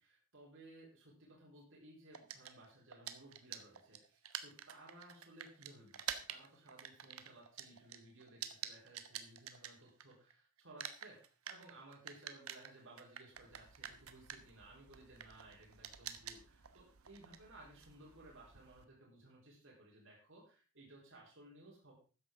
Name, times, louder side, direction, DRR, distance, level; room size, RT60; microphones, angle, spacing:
voice 1, 0.0-11.2 11.5-21.9, right 1 dB, 60° right, -3 dB, 4.0 m, -59 dB
sound 1, 2.1-10.3 10.6-18.8, right 9 dB, 85° right, 1.2 m, -48 dB
13.0 x 9.9 x 3.7 m, 0.35 s
head